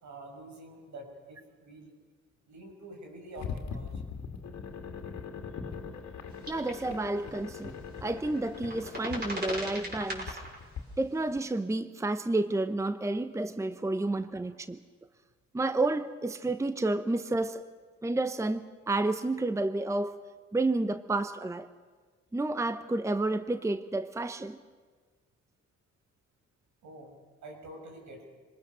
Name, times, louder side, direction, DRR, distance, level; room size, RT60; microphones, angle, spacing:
voice 1, 0.0-1.9 2.5-4.0 13.8-14.5 26.8-27.1 27.4-28.3, right 1 dB, 70° right, 2 dB, 6.0 m, -47 dB
sound 1, 3.4-10.8, left 6 dB, 65° left, 2.4 m, -41 dB
sound 2, 6.4-6.7 7.0-7.1 8.2-10.6 11.2-11.3, right 1 dB, 35° right, 6.3 m, -38 dB
voice 2, 6.5-10.4 11.0-14.8 15.5-17.6 18.0-20.2 20.5-21.7 22.3-24.6, right 2 dB, 10° right, 12 dB, 0.8 m, -30 dB
25.0 x 20.0 x 6.8 m, 1.4 s
cardioid pair, 90°, 30 cm